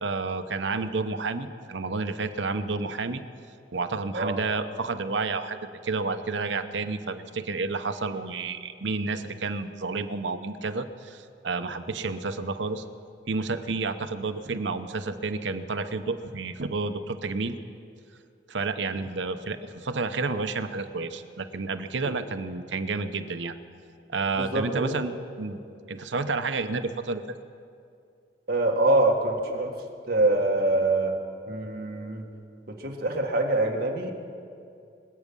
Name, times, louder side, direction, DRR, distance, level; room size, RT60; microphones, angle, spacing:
voice 1, 0.0-3.2 3.7-12.8 13.3-17.5 18.5-23.6 24.1-25.6 25.9-27.2, right 3 dB, 80° right, 9 dB, 0.8 m, -30 dB
voice 2, 24.4-24.9 28.5-29.7 30.1-31.2 31.5-32.3 32.8-34.1, right 2 dB, 60° right, 1 dB, 1.7 m, -24 dB
25.0 x 8.4 x 5.4 m, 2.4 s
head